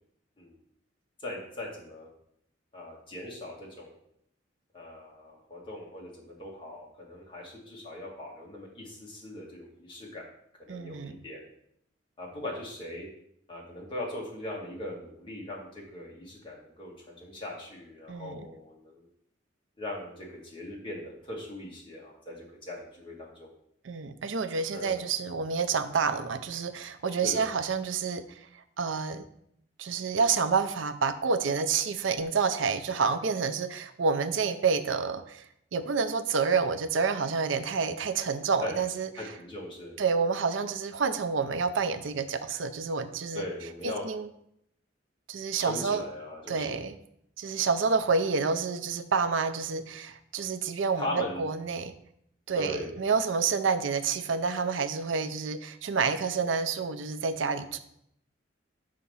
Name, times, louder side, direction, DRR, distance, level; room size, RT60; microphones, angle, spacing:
voice 1, 1.2-2.1 2.7-4.0 4.7-10.3 10.6-11.4 12.2-13.1 13.5-19.0 19.8-23.5 24.7-25.0 27.2-27.5 38.6-38.7 39.2-39.9 43.3-44.1 45.6-46.8 51.0-51.4 52.6-53.0, left 1 dB, 25° left, -3 dB, 1.9 m, -40 dB
voice 2, 10.7-11.2 18.1-18.4 23.8-28.2 28.8-29.2 29.8-35.4 35.7-39.1 40.0-43.4 43.8-44.3 45.3-46.0 46.5-47.0 47.4-51.9 52.5-57.8, right 5 dB, 85° right, 10 dB, 0.5 m, -28 dB
5.7 x 5.0 x 5.5 m, 0.73 s
head